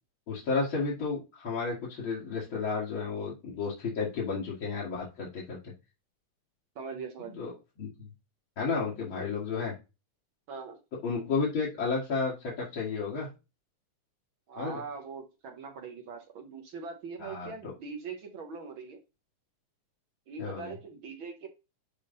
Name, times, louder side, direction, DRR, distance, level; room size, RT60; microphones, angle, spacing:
voice 1, 0.3-5.7 7.3-7.5 7.8-8.1 8.6-9.7 11.0-13.3 14.6-14.8 17.2-17.7 20.4-20.7, left 4 dB, 45° left, -7 dB, 2.7 m, -32 dB
voice 2, 6.7-7.5 10.5-10.8 14.5-19.0 20.3-21.5, right 5 dB, 60° right, 4 dB, 1.3 m, -41 dB
11.0 x 3.7 x 3.9 m, 0.27 s
omnidirectional pair, 3.4 m